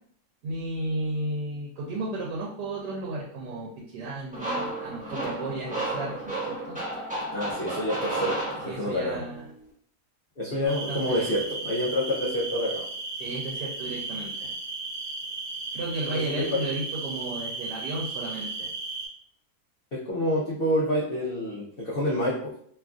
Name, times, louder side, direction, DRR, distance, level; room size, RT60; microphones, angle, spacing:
voice 1, 0.4-6.8 8.7-9.5 10.5-11.3 13.2-14.5 15.7-18.7, right 2 dB, 85° right, -4 dB, 1.2 m, -34 dB
sound 1, 4.3-9.1, right 1 dB, 15° right, 0.3 m, -32 dB
voice 2, 7.3-9.2 10.4-12.8 16.1-16.3 19.9-22.5, left 1 dB, 70° left, -6 dB, 0.5 m, -28 dB
Night Air at Purlkurrji, 10.7-19.1, right 3 dB, 55° right, 0.6 m, -35 dB
3.0 x 2.4 x 2.3 m, 0.64 s
omnidirectional pair, 1.8 m